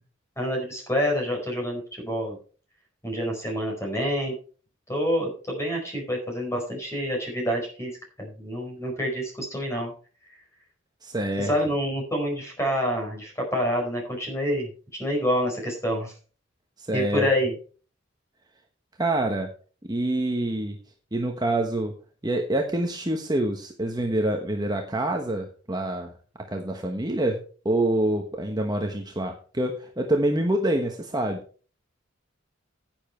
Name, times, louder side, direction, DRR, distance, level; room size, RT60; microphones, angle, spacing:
voice 1, 0.4-2.4 3.0-4.3 4.9-7.9 8.2-9.9 11.4-16.1 16.9-17.5, equal, 15° left, 0 dB, 4.6 m, -27 dB
voice 2, 11.0-11.5 16.8-17.3 19.0-19.5 19.8-20.8 21.1-21.9 22.2-26.1 26.5-31.4, right 1 dB, 20° right, 3 dB, 1.1 m, -26 dB
10.0 x 9.1 x 4.4 m, 0.39 s
head